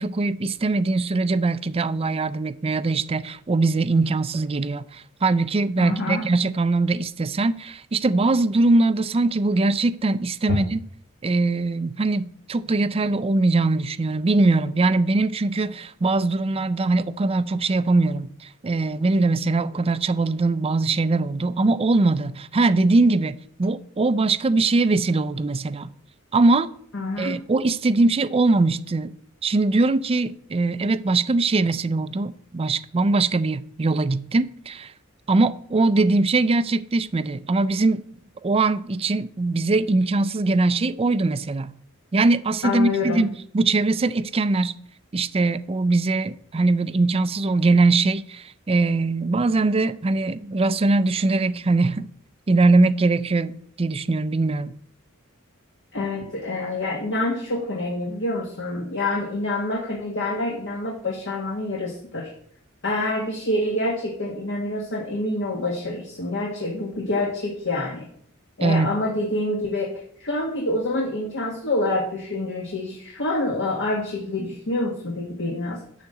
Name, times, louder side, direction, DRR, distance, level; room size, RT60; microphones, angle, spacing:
voice 1, 0.0-10.8 11.2-23.3 23.6-25.9 26.3-26.7 27.2-29.1 29.4-34.9 35.3-38.0 38.4-41.7 42.1-44.8 45.1-52.1 52.5-54.7 68.6-68.9, right 3 dB, 30° right, 0.4 m, -21 dB
voice 2, 5.8-6.2 10.5-10.6 26.9-27.4 42.6-43.2 55.9-62.3 62.8-68.0 68.6-75.8, left 2 dB, 60° left, 1.7 m, -27 dB
11.5 x 4.1 x 7.8 m
head